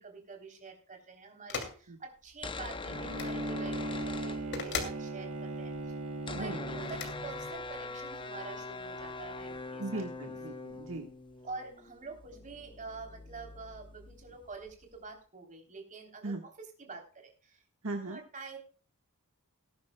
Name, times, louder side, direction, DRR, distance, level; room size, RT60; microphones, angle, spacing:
voice 1, 0.0-5.7 6.3-10.1 11.4-17.6 18.0-18.6, right 4 dB, 35° right, 3 dB, 3.4 m, -47 dB
sound 1, 1.5-1.8 3.1-3.3 4.5-5.0 6.8-7.1, left 5 dB, 55° left, 2.6 m, -36 dB
sound 2, 2.3-5.0 5.3-5.4 5.5-15.0, left 3 dB, 25° left, 0.7 m, -43 dB
Bowed string instrument, 2.9-7.5, right 2 dB, 80° right, 1.8 m, -38 dB
voice 2, 9.8-11.1 16.2-16.4 17.8-18.2, right 2 dB, 65° right, 4 dB, 1.4 m, -38 dB
19.5 x 10.5 x 2.2 m, 0.38 s
head